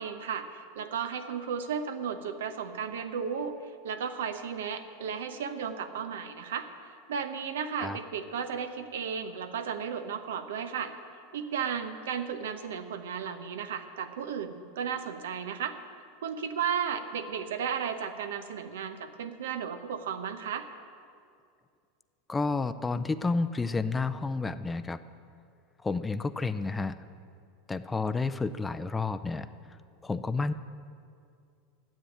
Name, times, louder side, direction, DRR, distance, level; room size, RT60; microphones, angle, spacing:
voice 1, 0.0-3.6 3.8-6.7 7.1-10.9 11.3-15.8 16.2-20.7, right 7 dB, 85° right, 9 dB, 0.8 m, -34 dB
voice 2, 22.3-25.0 25.8-27.0 27.7-29.5 30.0-30.5, left 3 dB, 15° left, 12 dB, 0.4 m, -30 dB
9.8 x 7.5 x 9.1 m, 2.3 s
hypercardioid pair, 110°, 0 cm